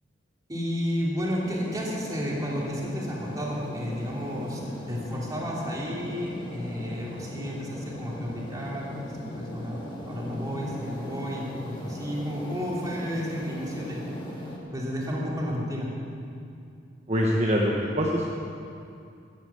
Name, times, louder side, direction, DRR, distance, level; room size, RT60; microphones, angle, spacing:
voice 1, 0.5-9.0 9.3-14.0 14.7-15.9, equal, 20° right, -4 dB, 2.9 m, -32 dB
sound 1, 1.4-14.6, left 1 dB, 25° left, 1.9 m, -38 dB
voice 2, 17.1-18.2, equal, 35° right, -2 dB, 1.2 m, -24 dB
14.0 x 9.0 x 8.4 m, 2.5 s
head